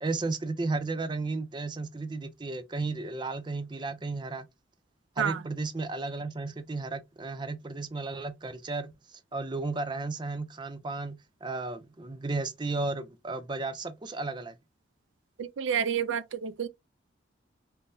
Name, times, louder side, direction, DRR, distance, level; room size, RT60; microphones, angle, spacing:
voice 1, 0.0-4.5 5.2-14.5, right 3 dB, 25° right, 0.4 m, -34 dB
voice 2, 15.4-16.7, right 8 dB, 85° right, 0.4 m, -29 dB
5.3 x 2.1 x 2.6 m
head